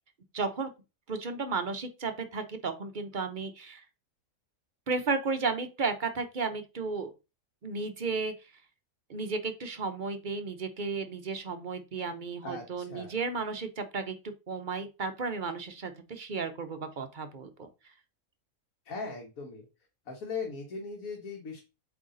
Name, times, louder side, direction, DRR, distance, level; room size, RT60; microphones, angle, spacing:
voice 1, 0.3-0.7 1.1-3.8 4.9-7.1 7.6-8.3 9.1-14.2 14.5-17.7, right 4 dB, 45° right, 8 dB, 0.7 m, -33 dB
voice 2, 12.4-13.1 18.8-19.7 20.1-21.6, left 4 dB, 65° left, 1 dB, 1.6 m, -39 dB
7.9 x 3.4 x 3.8 m, 0.28 s
omnidirectional pair, 1.6 m